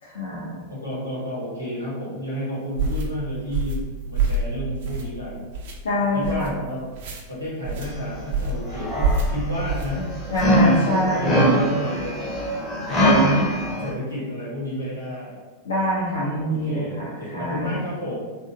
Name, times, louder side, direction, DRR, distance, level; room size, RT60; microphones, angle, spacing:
voice 1, 0.0-0.6 5.8-6.5 10.3-11.5 12.9-13.4 15.6-17.8, left 1 dB, 65° left, -7 dB, 0.5 m, -25 dB
voice 2, 0.7-5.5 6.0-6.8 7.3-10.1 10.5-12.4 12.9-13.5 13.8-15.4 16.5-18.2, left 1 dB, 85° left, -8 dB, 1.0 m, -31 dB
sound 1, 2.8-3.1 3.5-3.8 4.1-4.5 4.8-5.2 5.5-5.7 6.2-6.5 6.9-7.2 7.6-7.9 8.3-8.6 9.0-9.3 9.7-9.9 10.3-10.6, right 3 dB, 55° right, 0.4 m, -25 dB
sound 2, 7.8-8.2 8.5-13.9, equal, 20° left, 0.7 m, -22 dB
2.7 x 2.3 x 2.5 m, 1.3 s
figure-of-eight pair, 90°, 0 cm